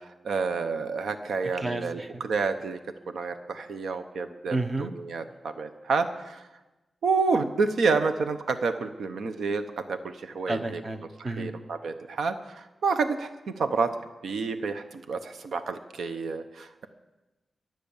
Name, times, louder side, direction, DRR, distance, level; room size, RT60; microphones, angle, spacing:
voice 1, 0.0-2.8 3.1-6.4 7.0-9.6 9.9-10.8 11.2-13.9 14.2-16.9, right 4 dB, 80° right, 9 dB, 0.9 m, -29 dB
voice 2, 1.6-2.1 4.5-4.9 10.5-11.5, right 2 dB, 30° right, 9 dB, 0.9 m, -31 dB
22.5 x 7.8 x 7.2 m, 1.1 s
wide cardioid pair, 180°, 0 cm